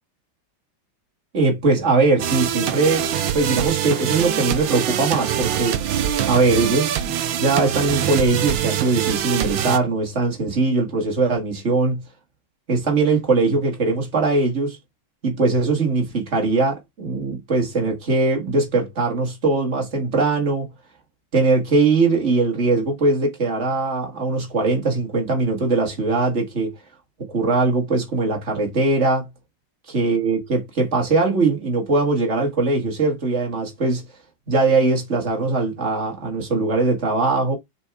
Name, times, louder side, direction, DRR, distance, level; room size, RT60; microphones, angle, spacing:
voice 1, 1.3-3.1 3.3-5.8 6.3-7.1 7.4-12.0 12.7-14.8 15.2-20.7 21.3-26.8 27.3-29.3 29.9-34.0 34.5-37.6, right 3 dB, 35° right, 2.0 m, -21 dB
sound 1, 2.2-9.8, right 10 dB, 75° right, 1.5 m, -24 dB
6.6 x 4.7 x 3.6 m
omnidirectional pair, 2.2 m